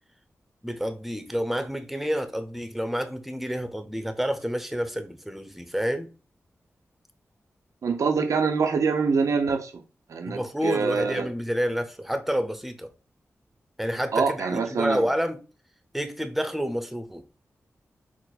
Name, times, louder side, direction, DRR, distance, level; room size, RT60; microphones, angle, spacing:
voice 1, 0.6-6.1 10.3-12.9 13.8-15.4 15.9-17.2, equal, 5° right, 0.7 m, -29 dB
voice 2, 7.8-9.8 10.1-11.3 14.1-15.1, right 5 dB, 85° right, 0.6 m, -25 dB
4.5 x 2.1 x 4.0 m
cardioid pair, 60°, 5 cm